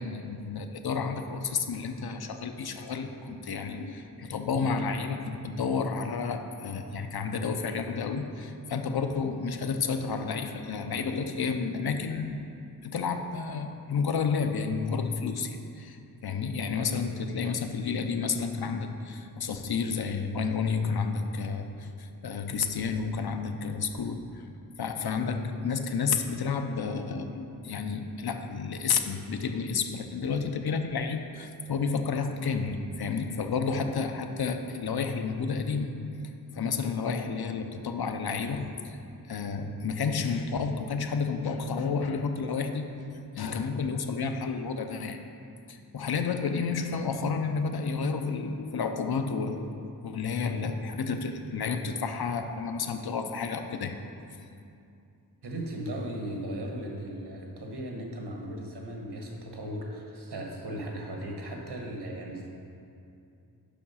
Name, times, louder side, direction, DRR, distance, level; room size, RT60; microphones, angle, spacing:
voice 1, 0.0-12.5 12.8-24.4 24.8-35.9 36.5-39.0 39.3-42.9 43.3-45.2 45.7-53.9, left 5 dB, 70° left, 6 dB, 0.6 m, -31 dB
voice 2, 55.4-62.5, right 1 dB, 85° right, 0 dB, 1.2 m, -37 dB
7.1 x 5.5 x 5.6 m, 2.6 s
wide cardioid pair, 75°, 39 cm